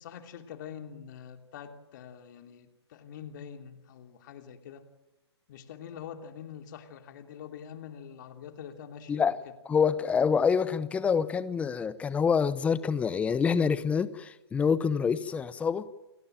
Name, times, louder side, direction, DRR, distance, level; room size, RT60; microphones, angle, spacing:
voice 1, 0.0-4.9 5.5-9.3, left 8 dB, 45° left, 6 dB, 3.0 m, -45 dB
voice 2, 9.7-15.9, left 6 dB, 10° left, 15 dB, 0.8 m, -26 dB
29.0 x 16.0 x 9.0 m, 1.0 s
hypercardioid pair, 145°, 14 cm